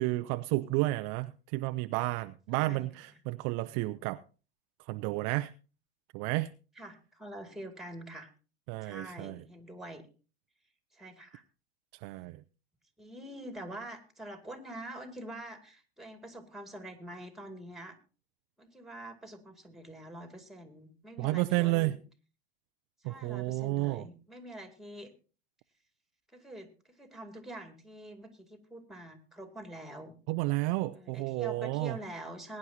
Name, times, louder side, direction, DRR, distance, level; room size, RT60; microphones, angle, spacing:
voice 1, 0.0-4.2 4.9-5.5 6.1-6.5 8.7-9.4 12.0-12.4 21.2-22.0 23.0-24.0 30.3-32.0, right 20 dB, 50° right, 0.5 m, -31 dB
voice 2, 2.5-2.9 6.8-8.3 8.8-10.0 10.9-11.4 13.0-18.0 18.6-22.0 23.0-25.1 26.3-26.7 27.0-30.1 30.9-32.6, right 1 dB, ahead, 2.3 m, -45 dB
21.5 x 9.8 x 2.8 m
hypercardioid pair, 90°, 30 cm